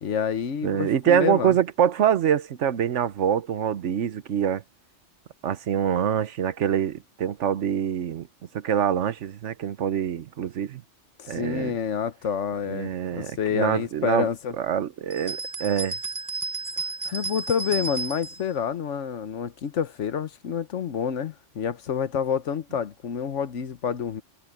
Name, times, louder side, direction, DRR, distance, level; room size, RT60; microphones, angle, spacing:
voice 1, 0.0-1.6 11.2-14.5 17.0-24.2, left 7 dB, 75° left, 1.3 m, -28 dB
voice 2, 0.6-4.6 5.4-8.3 8.5-10.8 11.3-11.7 12.7-14.3 14.6-16.0, right 9 dB, 75° right, 1.2 m, -25 dB
sound 1, 15.1-18.4, right 4 dB, 15° right, 0.9 m, -33 dB
omnidirectional pair, 1.3 m